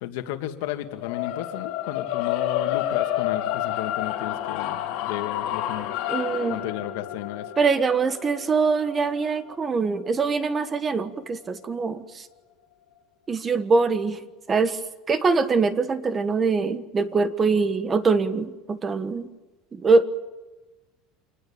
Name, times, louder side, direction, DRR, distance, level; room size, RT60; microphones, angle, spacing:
voice 1, 0.0-5.9 6.5-7.5, left 12 dB, 80° left, 7 dB, 2.3 m, -33 dB
sound 1, 1.0-11.2, left 12 dB, 60° left, 4.2 m, -30 dB
voice 2, 6.1-6.6 7.6-12.0 13.3-14.2 14.5-14.8 15.1-19.3 19.8-20.1, right 4 dB, 20° right, 11 dB, 1.4 m, -23 dB
27.5 x 20.0 x 9.0 m, 1.1 s
cardioid pair, 150°, 0 cm